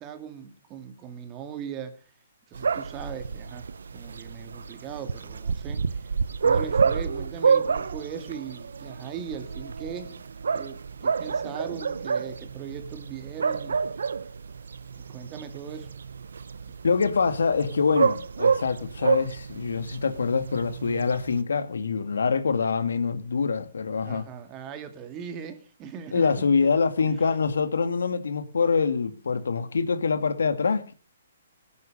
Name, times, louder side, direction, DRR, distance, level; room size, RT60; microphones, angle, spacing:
voice 1, 0.0-2.0 2.5-3.7 3.9-6.0 6.4-13.8 14.9-15.9 24.0-26.5, right 7 dB, 20° right, 2.4 m, -39 dB
sound 1, 2.5-21.4, right 5 dB, 85° right, 1.0 m, -29 dB
voice 2, 16.8-24.3 26.1-30.9, left 5 dB, 90° left, 2.1 m, -25 dB
18.5 x 9.6 x 6.7 m
hypercardioid pair, 160°, 0 cm